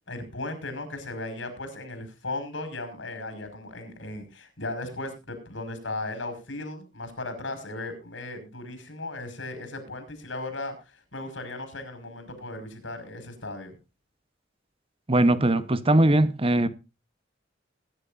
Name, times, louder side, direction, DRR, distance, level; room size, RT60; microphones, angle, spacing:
voice 1, 0.1-13.8, left 2 dB, 90° left, 5.6 m, -36 dB
voice 2, 15.1-16.7, right 1 dB, 30° right, 1.0 m, -20 dB
21.5 x 11.0 x 2.6 m
head